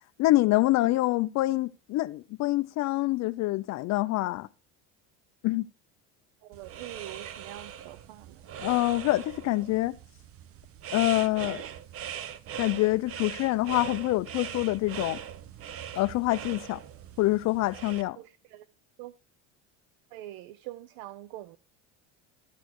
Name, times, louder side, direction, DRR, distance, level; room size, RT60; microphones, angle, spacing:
voice 1, 0.2-4.5 5.4-5.7 8.6-10.0 10.9-11.6 12.6-15.2 16.0-16.8 17.2-18.2, left 18 dB, 50° left, 0.4 m, -26 dB
voice 2, 6.4-8.4 18.2-18.7 19.0-19.1 20.1-21.6, right 15 dB, 75° right, 0.6 m, -44 dB
sound 1, 6.5-18.0, right 9 dB, 40° right, 0.7 m, -41 dB
13.0 x 6.2 x 4.5 m
supercardioid pair, 120°, 36 cm